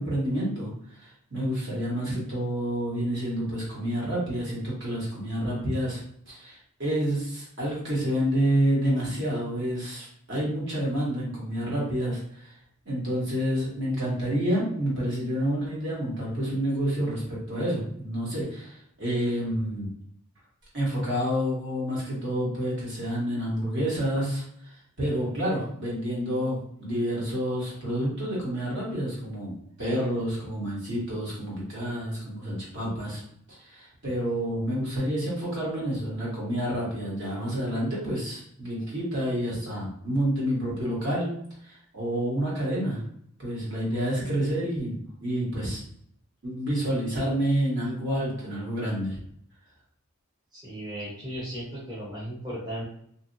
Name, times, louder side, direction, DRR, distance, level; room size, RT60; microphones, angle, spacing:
voice 1, 0.0-6.0 6.3-12.5 12.8-19.9 20.7-33.2 33.5-41.3 41.6-43.0 43.4-45.8 46.4-49.2, equal, 55° right, -6 dB, 1.4 m, -29 dB
voice 2, 50.5-52.8, equal, 20° right, -8 dB, 0.7 m, -36 dB
2.7 x 2.6 x 2.6 m, 0.69 s
head